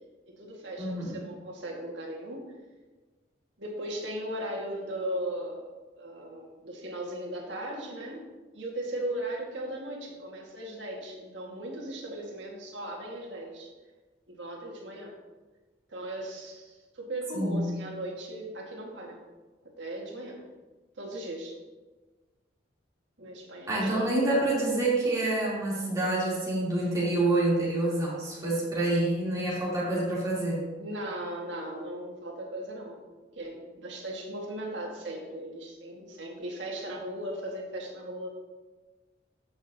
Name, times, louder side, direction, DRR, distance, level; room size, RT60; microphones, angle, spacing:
voice 1, 0.3-2.5 3.6-5.6 6.0-8.3 8.5-13.7 14.3-15.2 15.9-19.2 19.6-20.4 21.0-21.6 23.2-23.9 30.8-33.0 33.3-38.3, right 1 dB, 80° right, -1 dB, 1.8 m, -37 dB
voice 2, 0.8-1.1 17.3-17.6 23.7-30.6, right 2 dB, 20° right, -7 dB, 3.1 m, -27 dB
14.5 x 6.2 x 2.8 m, 1.3 s
head